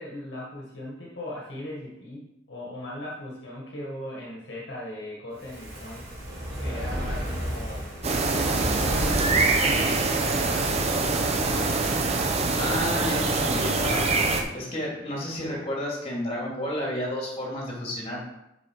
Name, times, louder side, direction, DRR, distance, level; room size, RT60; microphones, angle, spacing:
voice 1, 0.0-6.1 6.6-7.9 8.2-11.1, left 1 dB, 65° left, -4 dB, 1.7 m, -38 dB
Fire, 5.3-12.7 13.0-13.1, equal, 50° right, 3.2 m, -34 dB
sound 1, 8.0-14.4, right 3 dB, 35° right, 0.9 m, -24 dB
voice 2, 12.6-14.1 14.5-18.2, left 1 dB, 30° left, -3 dB, 2.7 m, -31 dB
6.7 x 5.5 x 4.7 m, 0.85 s
head